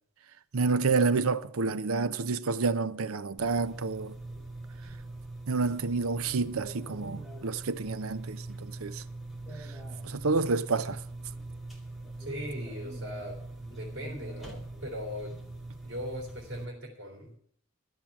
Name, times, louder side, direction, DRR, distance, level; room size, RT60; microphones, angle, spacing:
voice 1, 0.5-4.1 5.5-9.0 10.0-11.0, right 4 dB, 80° right, 0.7 m, -29 dB
sound 1, 3.4-16.7, right 2 dB, ahead, 2.3 m, -42 dB
voice 2, 12.2-13.4 13.7-15.3 15.8-17.3, equal, 55° right, 3.5 m, -39 dB
12.0 x 7.4 x 8.6 m
head